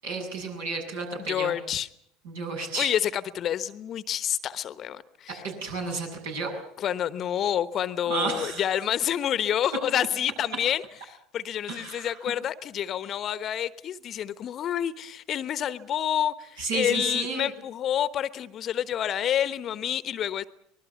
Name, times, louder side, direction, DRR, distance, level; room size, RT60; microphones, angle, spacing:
voice 1, 0.0-1.6 2.2-2.9 5.4-6.5 8.1-8.6 11.7-12.2 16.6-17.5, right 3 dB, 75° right, 1 dB, 7.3 m, -32 dB
voice 2, 1.3-1.9 2.8-5.4 6.8-20.4, left 10 dB, 40° left, 15 dB, 1.1 m, -28 dB
25.0 x 20.5 x 7.2 m, 0.70 s
figure-of-eight pair, 70°, 0 cm